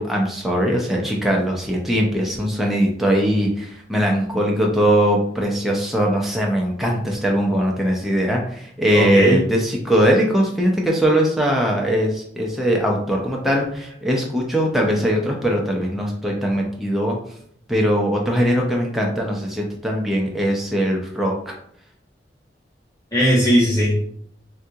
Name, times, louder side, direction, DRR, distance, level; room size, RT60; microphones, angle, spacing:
voice 1, 0.0-17.2 17.7-21.5, equal, ahead, -1 dB, 0.4 m, -20 dB
voice 2, 8.9-9.4 23.1-24.0, equal, 20° left, -5 dB, 1.1 m, -17 dB
3.7 x 2.3 x 2.7 m, 0.66 s
head